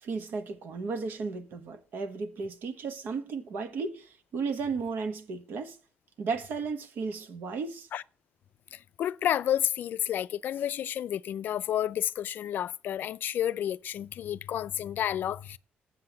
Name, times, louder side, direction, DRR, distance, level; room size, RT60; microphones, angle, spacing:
voice 1, 0.0-5.8 6.2-7.9, right 4 dB, 60° right, 1.2 m, -34 dB
voice 2, 8.7-15.6, left 10 dB, 60° left, 0.4 m, -30 dB
7.7 x 7.7 x 5.9 m
cardioid pair, 140°, 4 cm